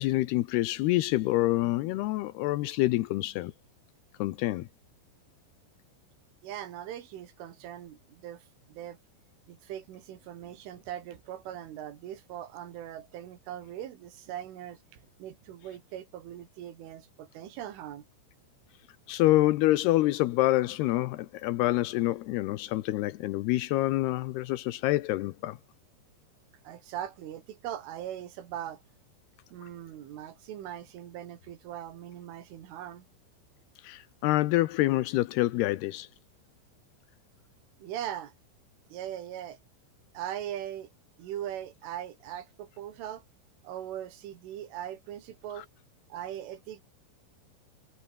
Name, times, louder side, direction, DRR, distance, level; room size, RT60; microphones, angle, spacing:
voice 1, 0.0-3.5 4.2-4.7 19.1-25.6 33.8-36.1 45.6-45.7, left 17 dB, 85° left, 2.3 m, -27 dB
voice 2, 6.4-9.0 9.5-18.1 26.6-28.8 29.5-33.1 37.8-38.3 38.9-39.6 40.1-40.9 41.2-43.2 43.6-45.7 46.1-46.8, right 11 dB, 75° right, 4.7 m, -40 dB
omnidirectional pair, 5.7 m